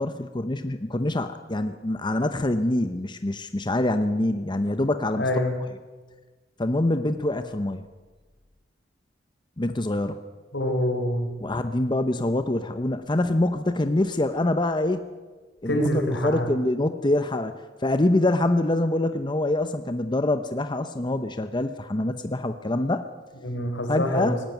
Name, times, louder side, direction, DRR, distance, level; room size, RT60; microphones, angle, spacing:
voice 1, 0.0-5.3 6.6-7.8 9.6-10.2 11.4-15.0 15.6-17.5 17.8-23.0 23.9-24.4, left 1 dB, 25° left, 9 dB, 0.8 m, -25 dB
voice 2, 5.1-5.6 10.5-11.3 15.7-16.5 23.4-24.4, left 1 dB, 85° left, 5 dB, 4.2 m, -25 dB
19.0 x 17.5 x 9.3 m, 1.3 s
head